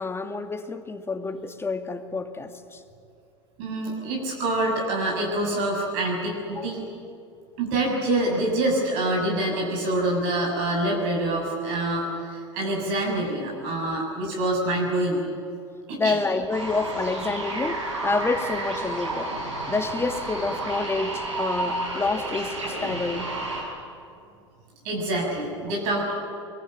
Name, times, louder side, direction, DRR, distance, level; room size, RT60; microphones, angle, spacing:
voice 1, 0.0-2.8 6.5-6.7 16.0-19.3 19.7-23.3, left 3 dB, 15° left, 7 dB, 2.1 m, -28 dB
voice 2, 3.6-6.8 7.6-15.2 15.9-16.2 24.8-26.1, right 1 dB, 60° right, -1 dB, 6.8 m, -26 dB
sound 1, 16.5-23.6, right 2 dB, 80° right, 6.4 m, -31 dB
23.0 x 22.5 x 9.1 m, 2.5 s
figure-of-eight pair, 75°, 15 cm